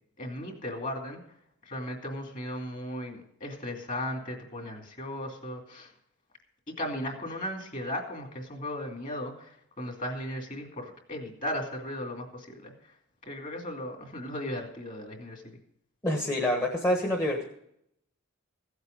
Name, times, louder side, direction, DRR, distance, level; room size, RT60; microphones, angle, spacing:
voice 1, 0.2-1.2 1.7-5.9 6.8-12.7 13.3-15.4, left 1 dB, 35° left, 2 dB, 2.6 m, -36 dB
voice 2, 16.0-17.4, left 1 dB, 15° left, 0 dB, 1.3 m, -27 dB
16.0 x 8.0 x 5.3 m, 0.74 s
head